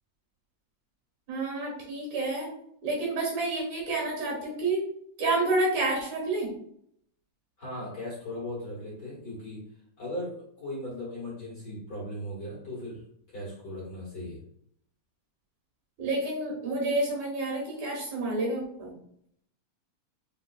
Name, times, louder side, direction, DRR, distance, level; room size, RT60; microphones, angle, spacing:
voice 1, 1.3-2.5 2.8-4.8 5.2-6.5 16.0-18.9, right 2 dB, 70° right, -2 dB, 3.1 m, -29 dB
voice 2, 7.6-9.6 10.0-13.0 13.3-14.4, left 1 dB, 40° left, -7 dB, 2.1 m, -38 dB
5.8 x 3.6 x 2.4 m, 0.70 s
omnidirectional pair, 3.4 m